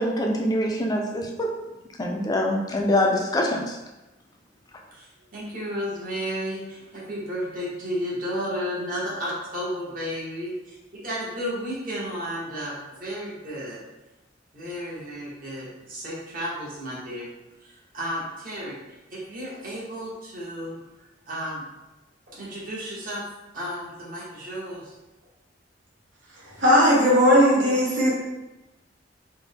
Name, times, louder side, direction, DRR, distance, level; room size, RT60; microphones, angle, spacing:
voice 1, 0.0-1.5 2.0-3.8, left 1 dB, 20° left, 0 dB, 0.4 m, -24 dB
voice 2, 4.9-13.8 14.5-17.3 17.6-18.8 19.1-20.8 21.3-21.6 22.3-23.2 23.5-24.9, equal, 50° right, -6 dB, 1.1 m, -33 dB
voice 3, 26.6-28.1, equal, 90° right, -6 dB, 1.2 m, -17 dB
3.4 x 2.2 x 3.5 m, 1.0 s
head